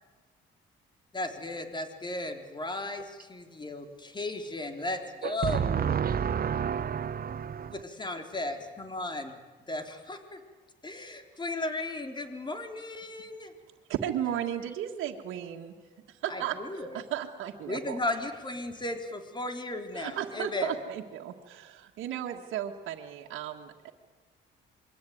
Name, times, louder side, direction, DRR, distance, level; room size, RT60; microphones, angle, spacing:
voice 1, 1.1-5.8 7.6-9.4 9.7-10.4 10.8-13.5 16.3-16.9 17.7-20.7, left 2 dB, 25° left, 5 dB, 3.7 m, -35 dB
voice 2, 5.5-7.7, right 8 dB, 50° right, 13 dB, 1.2 m, -29 dB
voice 3, 13.9-15.7 16.1-18.0 19.9-23.9, right 10 dB, 90° right, 0 dB, 1.9 m, -35 dB
27.5 x 23.0 x 9.5 m, 1.3 s
cardioid pair, 90°, 20 cm